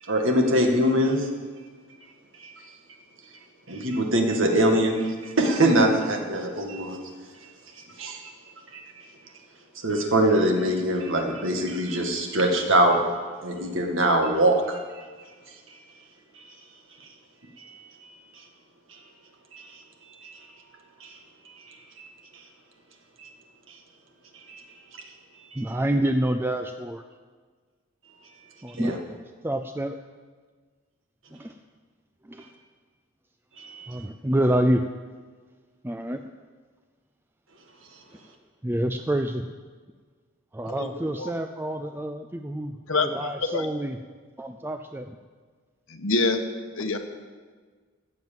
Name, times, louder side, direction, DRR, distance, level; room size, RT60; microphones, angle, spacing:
voice 1, 0.0-1.3 2.3-2.5 3.7-7.0 7.4-8.3 8.7-8.9 9.8-13.0 13.4-15.1 15.7-15.8 17.6-18.1 18.9-19.0 19.5-19.7 20.1-20.5 21.0-22.1 22.3-22.4 23.2-23.3 23.7-23.8 24.3-24.7 25.5-25.6 28.7-29.0 33.6-34.0, right 1 dB, 65° right, 3 dB, 1.9 m, -24 dB
voice 2, 25.6-27.0 28.6-29.0 29.4-30.0 31.3-31.5 32.3-32.5 33.9-34.8 35.8-36.2 38.6-39.5 40.5-44.0 44.4-45.2, right 1 dB, 10° right, 7 dB, 0.4 m, -27 dB
voice 3, 40.6-41.3 42.9-43.1 43.5-43.7 45.9-46.4 46.7-47.0, left 3 dB, 75° left, 6 dB, 1.2 m, -26 dB
15.0 x 7.8 x 7.5 m, 1.5 s
head